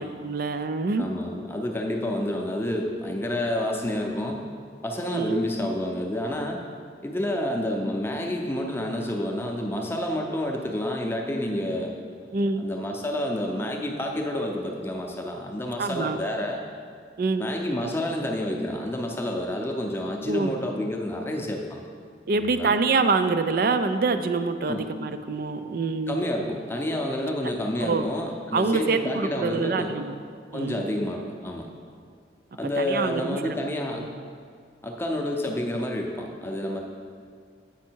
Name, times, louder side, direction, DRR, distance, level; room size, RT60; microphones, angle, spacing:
voice 1, 0.0-1.1 5.1-5.4 12.3-12.6 15.8-16.2 17.2-17.5 20.3-20.5 22.3-26.2 27.8-28.1 28.5-30.2 30.5-30.8 32.8-33.5, right 4 dB, 55° right, 9 dB, 0.4 m, -25 dB
voice 2, 1.0-4.4 4.8-6.6 7.0-11.9 12.2-12.3 12.6-16.6 17.4-21.9 22.4-22.8 24.7-24.9 26.1-29.9 30.5-31.7 32.5-34.1 34.8-36.8, left 1 dB, 15° left, 1 dB, 0.6 m, -29 dB
8.3 x 5.4 x 4.5 m, 2.1 s
head